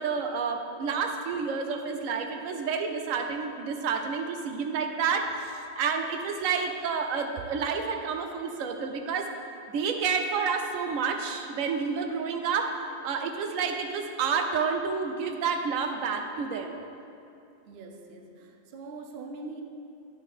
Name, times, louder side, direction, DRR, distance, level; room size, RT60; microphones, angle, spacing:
voice 1, 0.0-9.3 9.7-12.7 13.0-16.8, right 5 dB, 90° right, 4 dB, 1.0 m, -29 dB
voice 2, 17.7-19.6, right 3 dB, 60° right, 4 dB, 0.8 m, -42 dB
9.7 x 5.4 x 3.5 m, 2.6 s
omnidirectional pair, 1.3 m